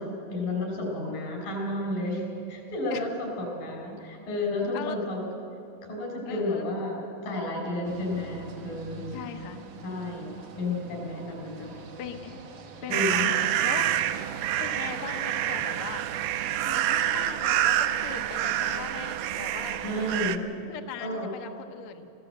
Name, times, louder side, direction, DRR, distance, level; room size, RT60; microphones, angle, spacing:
voice 1, 0.0-2.2 2.5-5.2 5.8-9.2 9.8-10.3 10.6-11.7 12.9-13.3 19.8-20.4 21.0-21.3, left 2 dB, 85° left, 0 dB, 6.4 m, -31 dB
voice 2, 6.3-6.6 9.1-9.6 10.8-10.9 12.0-12.4 12.8-13.9 14.6-16.3 16.6-19.8 20.5-22.1, left 8 dB, 65° left, 5 dB, 1.4 m, -40 dB
sound 1, 7.8-16.9, right 3 dB, 60° right, 1.2 m, -45 dB
sound 2, 12.9-20.4, right 12 dB, 85° right, 2.3 m, -27 dB
23.0 x 15.5 x 7.9 m, 2.6 s
omnidirectional pair, 3.9 m